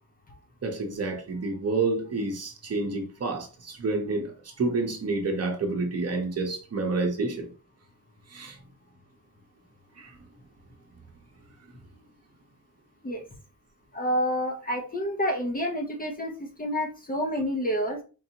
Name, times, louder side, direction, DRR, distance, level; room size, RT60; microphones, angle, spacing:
voice 1, 0.6-4.3 4.6-7.5 8.3-8.6 10.0-10.1, right 3 dB, 45° right, 0.8 m, -29 dB
voice 2, 13.9-18.0, equal, 25° left, 0.6 m, -28 dB
4.6 x 2.6 x 2.8 m
wide cardioid pair, 180°, 35 cm